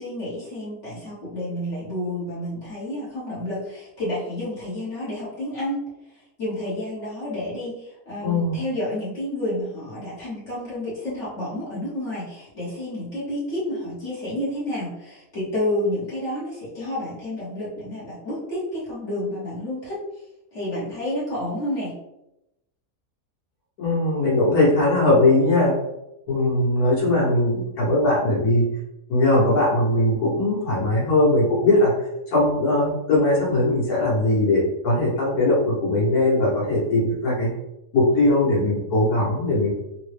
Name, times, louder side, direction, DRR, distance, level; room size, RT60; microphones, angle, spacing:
voice 1, 0.0-5.8 6.1-20.0 20.5-22.0, left 1 dB, 55° left, -8 dB, 1.3 m, -30 dB
voice 2, 8.2-8.6 23.8-25.7 26.3-28.6 29.1-31.9 32.3-37.5 37.9-39.7, left 2 dB, 85° left, -6 dB, 1.7 m, -20 dB
3.7 x 2.1 x 3.2 m, 0.89 s
omnidirectional pair, 1.6 m